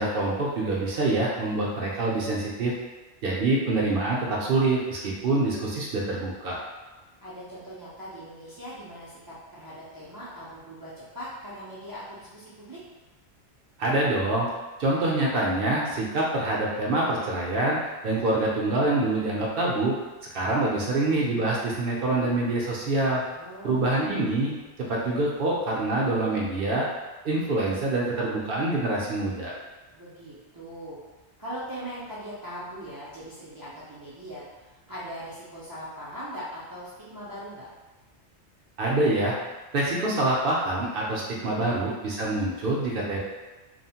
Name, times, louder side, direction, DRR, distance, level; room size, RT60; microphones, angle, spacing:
voice 1, 0.0-2.7 3.2-6.6 13.8-14.5 14.8-17.8 18.0-20.0 20.3-23.2 23.6-24.5 24.9-26.9 27.2-29.5 38.8-39.3 39.7-43.2, right 2 dB, 60° right, -3 dB, 0.7 m, -25 dB
voice 2, 7.2-12.8 23.3-24.2 29.9-31.0 31.4-37.7 41.3-41.9, equal, 35° right, -10 dB, 0.3 m, -40 dB
2.9 x 2.0 x 2.7 m, 1.2 s
omnidirectional pair, 1.2 m